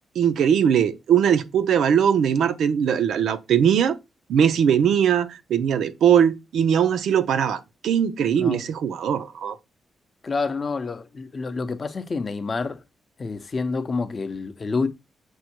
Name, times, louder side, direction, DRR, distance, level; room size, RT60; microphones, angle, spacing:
voice 1, 0.2-4.0 4.3-9.6, right 8 dB, 85° right, 0.4 m, -20 dB
voice 2, 8.3-8.6 10.2-12.8 13.2-14.9, left 4 dB, 35° left, 0.5 m, -28 dB
6.2 x 2.1 x 2.8 m
cardioid pair, 110°, 0 cm